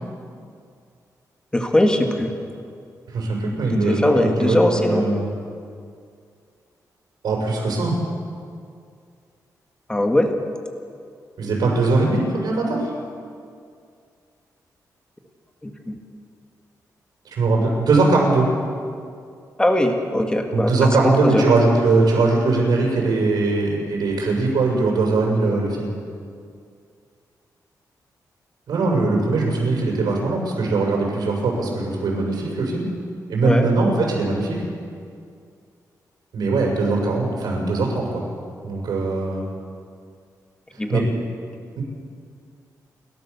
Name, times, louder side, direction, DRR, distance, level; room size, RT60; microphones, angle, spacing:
voice 1, 1.5-2.3 3.7-5.1 9.9-10.3 15.6-15.9 19.6-20.7 21.0-21.4 33.4-33.7 40.8-41.0, left 1 dB, 10° left, 4 dB, 1.9 m, -20 dB
voice 2, 3.1-5.3 7.2-8.0 11.4-12.9 17.4-18.5 20.5-25.9 28.7-32.9 33.3-34.6 36.3-38.2 38.6-39.4 40.9-41.0 41.8-41.9, right 3 dB, 80° right, -2 dB, 6.8 m, -20 dB
29.0 x 13.0 x 7.2 m, 2.3 s
wide cardioid pair, 145°, 7 cm